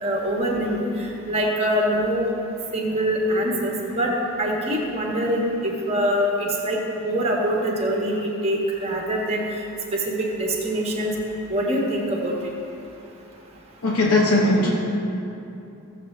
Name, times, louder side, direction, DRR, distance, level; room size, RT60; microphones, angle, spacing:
voice 1, 0.0-2.3 2.7-4.1 4.4-6.3 6.6-9.4 9.9-11.1 11.5-12.3, equal, 30° right, -2 dB, 1.4 m, -24 dB
voice 2, 13.8-14.7, left 2 dB, 75° left, -4 dB, 1.1 m, -18 dB
15.5 x 7.4 x 3.2 m, 2.8 s
head